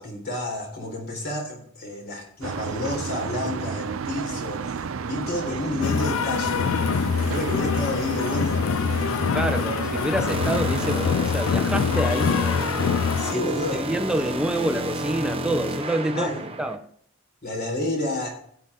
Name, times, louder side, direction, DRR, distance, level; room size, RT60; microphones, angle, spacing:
voice 1, 0.0-6.7 7.1-9.2 13.2-13.8 16.1-16.4 17.4-18.4, left 1 dB, 45° left, 4.0 m, -30 dB
sound 1, 2.4-11.0, right 5 dB, 75° right, 0.5 m, -32 dB
sound 2, 5.8-13.3, left 6 dB, 75° left, 0.4 m, -24 dB
voice 2, 9.3-12.5 13.3-13.5 13.7-16.3 16.6-16.9, right 1 dB, 5° right, 0.7 m, -27 dB
sound 3, 10.3-16.8, right 1 dB, 25° right, 1.0 m, -31 dB
16.0 x 9.0 x 3.6 m
head